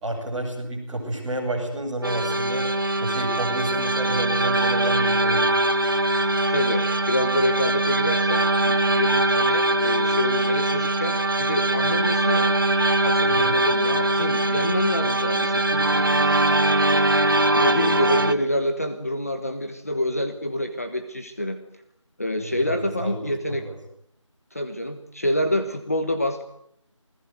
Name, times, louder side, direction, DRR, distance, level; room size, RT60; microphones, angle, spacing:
voice 1, 0.0-2.7 3.0-5.5 13.2-13.5 15.7-16.2 22.4-23.2 23.4-23.7, right 1 dB, ahead, -13 dB, 2.8 m, -30 dB
sound 1, 2.0-18.3, right 2 dB, 45° right, 1.6 m, -22 dB
voice 2, 6.5-12.6 13.0-16.1 17.5-21.6 22.2-23.7 24.5-26.4, left 1 dB, 30° left, 7 dB, 1.4 m, -27 dB
28.5 x 20.0 x 9.4 m, 0.74 s
figure-of-eight pair, 180°, 16 cm